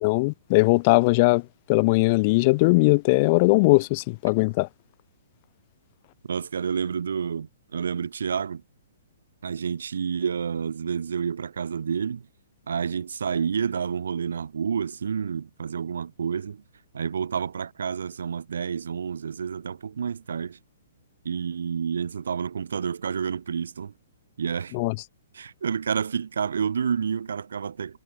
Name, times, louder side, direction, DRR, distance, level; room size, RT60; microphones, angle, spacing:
voice 1, 0.0-1.4 1.7-4.7 24.7-24.9, left 26 dB, 40° left, 0.4 m, -20 dB
voice 2, 6.2-8.6 9.4-12.3 12.7-16.6 16.9-20.6 21.2-23.9 24.4-24.8 25.3-28.0, right 6 dB, 75° right, 0.4 m, -29 dB
hypercardioid pair, 130°, 0 cm